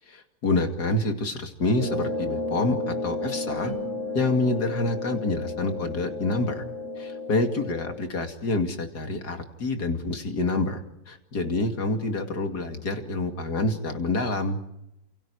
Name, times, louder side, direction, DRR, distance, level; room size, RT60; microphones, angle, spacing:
voice 1, 0.1-3.7 4.1-6.6 7.0-14.6, left 2 dB, 65° left, 5 dB, 3.0 m, -27 dB
sound 1, 1.8-7.9, left 2 dB, 45° left, 7.7 m, -32 dB
sound 2, 3.6-7.0, right 1 dB, 25° right, 3.7 m, -46 dB
30.0 x 28.0 x 4.8 m, 0.87 s
omnidirectional pair, 1.9 m